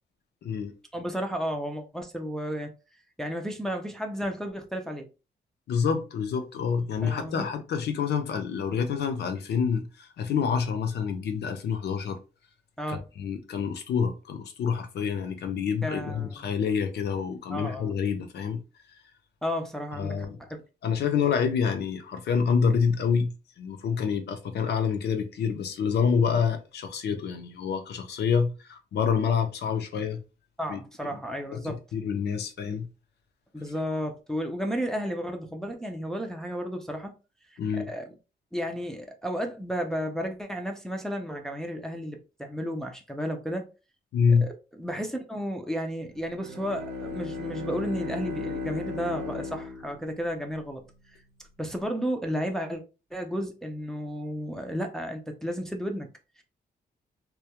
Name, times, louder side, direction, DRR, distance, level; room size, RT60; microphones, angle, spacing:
voice 1, 0.4-0.7 5.7-12.2 12.9-18.6 20.0-20.4 20.8-30.2 30.7-30.8 31.5-32.9 37.6-37.9 44.1-44.5, left 6 dB, 70° left, 0.5 m, -27 dB
voice 2, 0.9-2.7 3.2-5.1 7.0-7.5 12.8-13.0 15.8-16.3 17.5-17.9 19.4-20.6 30.6-31.8 33.5-37.1 37.5-38.1 38.5-43.7 44.4-50.8 51.6-52.8 53.1-56.1 56.4-56.5, equal, 5° left, 0.3 m, -33 dB
Bowed string instrument, 46.2-50.6, left 3 dB, 90° right, 0.6 m, -36 dB
2.2 x 2.1 x 2.8 m
wide cardioid pair, 145°, 17 cm